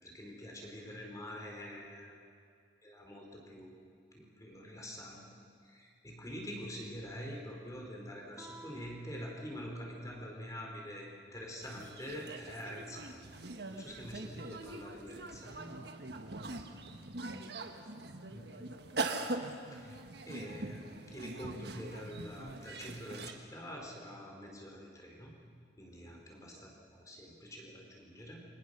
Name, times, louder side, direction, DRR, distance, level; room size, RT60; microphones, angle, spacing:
voice 1, 0.0-2.2 2.8-3.9 4.1-5.2 5.6-13.3 13.7-15.7 18.3-18.4 19.7-25.3 25.8-28.4, equal, 20° left, 0 dB, 4.3 m, -46 dB
Guitar, 8.3-10.8, right 2 dB, 10° right, 2.0 m, -56 dB
sound 1, 11.6-23.3, right 2 dB, 60° right, 1.6 m, -42 dB
voice 2, 17.1-19.0 26.4-26.7, equal, 85° right, 3 dB, 2.3 m, -55 dB
28.5 x 24.5 x 6.8 m, 2.2 s
head